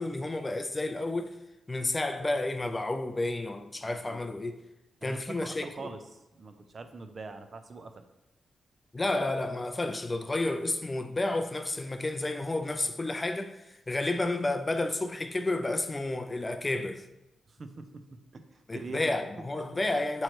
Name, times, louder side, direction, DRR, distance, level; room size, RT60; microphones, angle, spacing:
voice 1, 0.0-1.4 1.7-4.6 5.0-5.9 8.9-17.1 18.7-20.2, left 2 dB, 20° left, 0.3 m, -31 dB
voice 2, 3.9-4.2 5.0-8.0 17.5-18.0 18.3-19.1 19.7-19.8, right 3 dB, 40° right, 0.5 m, -43 dB
7.5 x 3.1 x 4.4 m
wide cardioid pair, 130°, 0 cm